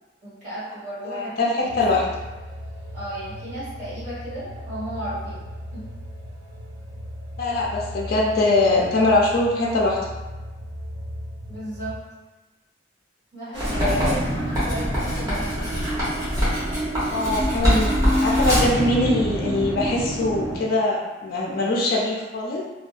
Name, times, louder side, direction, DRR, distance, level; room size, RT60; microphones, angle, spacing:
voice 1, 0.2-1.7 2.9-5.5 5.7-5.8 11.5-11.9 13.3-15.7, right 1 dB, 40° right, -13 dB, 1.4 m, -33 dB
voice 2, 1.0-2.0 7.4-10.0 13.7-14.1 17.1-17.9 18.2-22.6, left 2 dB, 50° left, -3 dB, 0.4 m, -22 dB
sound 1, 1.7-12.0, equal, 75° right, 0.3 m, -37 dB
sound 2, 13.5-20.6, equal, 55° right, 0.8 m, -28 dB
Writing, 13.6-18.8, equal, 15° right, 0.9 m, -24 dB
2.5 x 2.2 x 2.4 m, 1.2 s
head